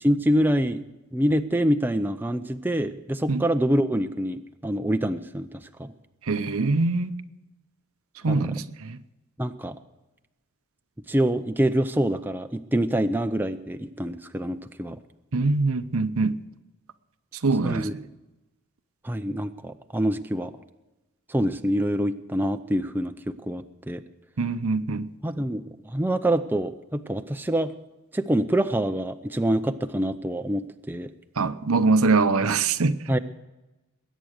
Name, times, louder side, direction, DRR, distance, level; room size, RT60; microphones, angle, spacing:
voice 1, 0.0-0.8 1.1-5.5 5.8-5.9 8.3-8.5 9.4-9.8 11.1-15.0 17.6-17.9 19.0-20.5 21.3-24.0 25.2-27.7 28.1-31.1 33.1-33.2, right 1 dB, 10° right, 0.5 m, -25 dB
voice 2, 6.2-7.2 8.2-9.0 15.3-16.4 17.4-18.0 24.4-25.1 31.4-33.2, right 3 dB, 70° right, 0.8 m, -23 dB
21.0 x 9.2 x 6.5 m
head